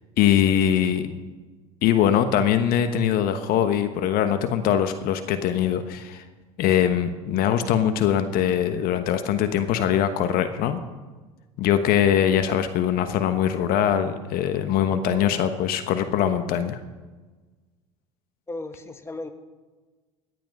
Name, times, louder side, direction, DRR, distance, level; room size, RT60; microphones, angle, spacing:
voice 1, 0.2-1.1 1.8-6.2 6.6-10.8 11.6-16.8, left 9 dB, 55° left, 10 dB, 1.2 m, -22 dB
voice 2, 18.5-19.3, left 2 dB, 15° left, 9 dB, 1.4 m, -35 dB
17.5 x 11.0 x 5.4 m, 1.3 s
hypercardioid pair, 75°, 18 cm